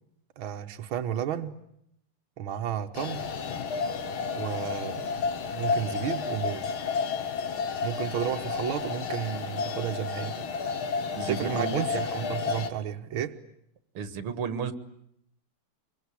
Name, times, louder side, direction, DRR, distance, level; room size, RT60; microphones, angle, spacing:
voice 1, 0.4-1.6 2.4-3.3 4.3-5.1 5.5-6.7 7.8-10.5 11.3-13.4, right 9 dB, 70° right, 5 dB, 2.1 m, -32 dB
sound 1, 2.9-12.7, left 5 dB, 70° left, 2.3 m, -31 dB
voice 2, 11.1-11.9 13.9-14.7, right 7 dB, 90° right, 12 dB, 2.6 m, -31 dB
25.5 x 23.5 x 9.9 m, 0.74 s
omnidirectional pair, 2.4 m